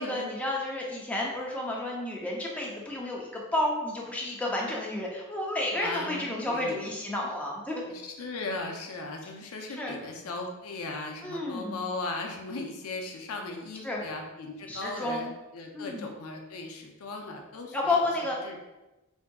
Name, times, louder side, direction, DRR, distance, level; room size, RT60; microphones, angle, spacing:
voice 1, 0.0-7.8 9.8-10.0 11.2-11.9 13.8-14.0 14.7-15.3 15.7-16.1 17.7-18.4, left 2 dB, 5° left, -3 dB, 0.5 m, -31 dB
voice 2, 5.7-6.9 7.2-7.3 7.9-18.1 18.4-18.6, left 3 dB, 75° left, 2 dB, 0.5 m, -37 dB
3.5 x 2.7 x 2.2 m, 1.0 s
head